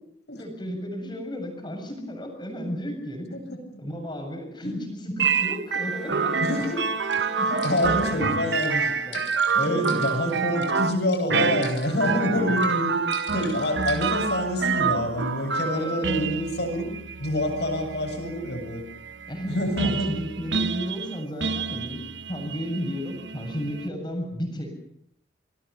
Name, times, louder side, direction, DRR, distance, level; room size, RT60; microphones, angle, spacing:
voice 1, 0.4-3.4 3.8-6.4 7.4-8.2 8.8-9.2 9.5-10.1 12.2-12.5 14.0-14.1 15.7-16.3 19.3-22.0 22.3-24.8, equal, 25° left, 4 dB, 7.4 m, -33 dB
sound 1, 5.2-23.9, right 5 dB, 80° right, 1.0 m, -28 dB
Bowed string instrument, 5.7-9.2, left 1 dB, ahead, 3.0 m, -40 dB
voice 2, 6.4-6.8 7.1-8.9 9.6-13.0 13.3-16.9 17.2-18.9 19.5-20.1, left 1 dB, 70° left, 5 dB, 7.9 m, -27 dB
sound 2, 6.6-6.7 7.1-7.2 7.6-8.1 8.6-8.7 9.1-10.7 11.1-11.2 11.6-12.2 12.6-12.7 13.1-14.4, left 8 dB, 90° left, 5.8 m, -43 dB
28.0 x 20.5 x 6.9 m, 0.71 s
head